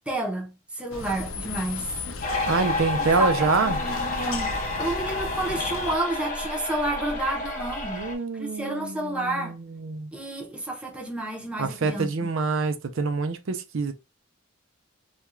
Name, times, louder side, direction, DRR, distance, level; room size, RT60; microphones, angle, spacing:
voice 1, 0.1-1.9 3.0-8.0 8.3-9.6 10.1-12.3, right 2 dB, 5° right, 0.6 m, -30 dB
sound 1, 0.9-6.0, left 4 dB, 65° left, 0.5 m, -36 dB
sound 2, 2.2-8.2, left 2 dB, 40° left, 0.8 m, -30 dB
voice 2, 2.5-3.8 7.9-10.1 11.6-13.9, right 4 dB, 65° right, 0.5 m, -26 dB
2.4 x 2.2 x 3.0 m
head